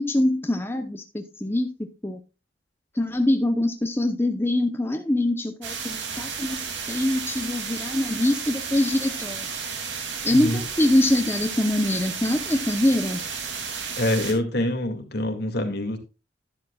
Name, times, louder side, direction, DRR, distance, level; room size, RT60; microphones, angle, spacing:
voice 1, 0.0-1.7 2.0-2.2 3.0-9.5 10.2-13.2, left 1 dB, 15° left, 0.8 m, -24 dB
sound 1, 5.6-14.3, right 6 dB, 80° right, 2.6 m, -33 dB
voice 2, 10.3-10.6 14.0-16.0, left 1 dB, 60° left, 2.2 m, -25 dB
11.5 x 10.5 x 2.3 m
head